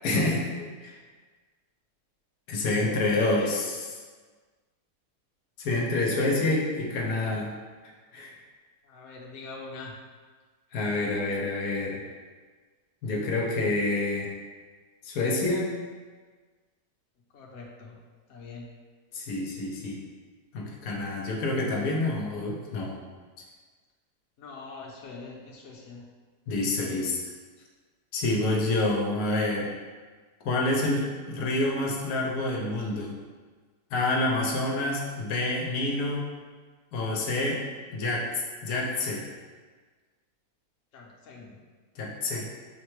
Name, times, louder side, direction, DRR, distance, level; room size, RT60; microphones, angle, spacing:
voice 1, 0.0-1.0 2.5-3.8 5.6-7.5 8.1-8.3 10.7-12.0 13.0-14.3 15.0-15.7 19.1-20.0 20.5-23.0 26.5-27.2 28.1-29.7 30.4-33.2 33.9-36.3 36.9-37.6 37.9-38.3 38.6-39.3 42.0-42.5, left 2 dB, 85° left, -2 dB, 1.2 m, -27 dB
voice 2, 8.8-9.9 17.3-18.0 18.3-18.7 24.4-26.0 40.9-41.6, left 3 dB, 60° left, -2 dB, 1.0 m, -43 dB
6.4 x 2.2 x 3.0 m, 1.5 s
omnidirectional pair, 1.7 m